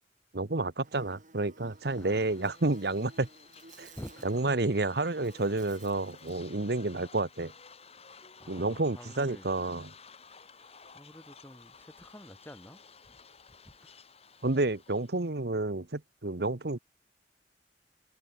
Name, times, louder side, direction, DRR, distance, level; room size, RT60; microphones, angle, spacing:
voice 1, 0.3-3.3 3.8-3.9 4.2-7.5 8.5-9.9 14.4-16.8, right 2 dB, 60° right, 1.2 m, -30 dB
Buzz, 0.8-6.5, right 3 dB, 45° right, 6.2 m, -56 dB
sound 1, 1.7-15.3, left 5 dB, 35° left, 6.2 m, -55 dB
voice 2, 2.0-2.3 4.0-4.5 8.4-9.5 10.5-13.2 13.6-14.0, equal, 15° left, 3.4 m, -49 dB
head